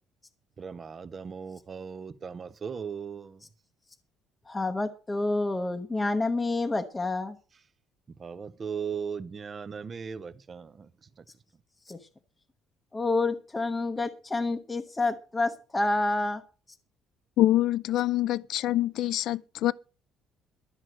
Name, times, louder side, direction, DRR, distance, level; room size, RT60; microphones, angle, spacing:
voice 1, 0.6-3.3 8.2-10.7, right 6 dB, 25° right, 0.6 m, -37 dB
voice 2, 4.5-7.4 11.9-12.0 12.9-16.4, left 2 dB, 10° left, 0.8 m, -28 dB
voice 3, 17.4-19.7, left 14 dB, 55° left, 0.5 m, -25 dB
12.5 x 6.2 x 7.6 m
cardioid pair, 180°, 0 cm